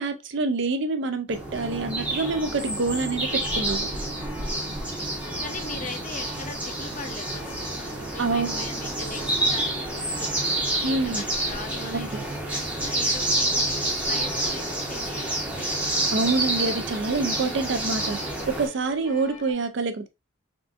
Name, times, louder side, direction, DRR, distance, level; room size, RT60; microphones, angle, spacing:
voice 1, 0.0-3.9 8.2-8.7 10.8-11.2 11.8-12.2 16.1-20.1, right 3 dB, 55° right, 0.4 m, -27 dB
sound 1, 1.3-18.7, right 1 dB, 5° right, 0.7 m, -28 dB
sound 2, 1.5-19.5, left 2 dB, 75° left, 0.9 m, -45 dB
voice 2, 4.6-5.1 5.4-10.4 10.8-13.8 14.1-15.9 17.4-17.8, left 4 dB, 35° left, 0.5 m, -41 dB
3.6 x 2.5 x 2.4 m
head